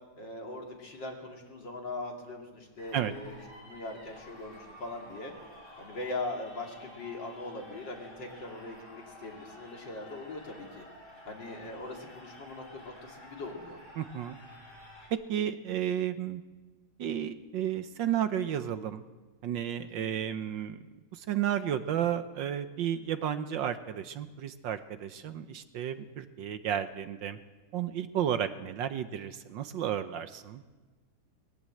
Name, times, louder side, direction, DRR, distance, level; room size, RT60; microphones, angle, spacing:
voice 1, 0.2-5.3 5.8-10.9 11.3-13.8 19.8-20.2, left 2 dB, 60° left, 0 dB, 3.6 m, -41 dB
sound 1, 2.8-15.1, left 1 dB, 80° left, 8.5 m, -51 dB
voice 2, 14.0-14.4 15.1-16.4 17.0-19.0 19.4-20.8 21.1-27.4 27.7-30.6, right 10 dB, 70° right, 11 dB, 1.4 m, -32 dB
20.5 x 17.5 x 7.7 m, 1.3 s
omnidirectional pair, 2.3 m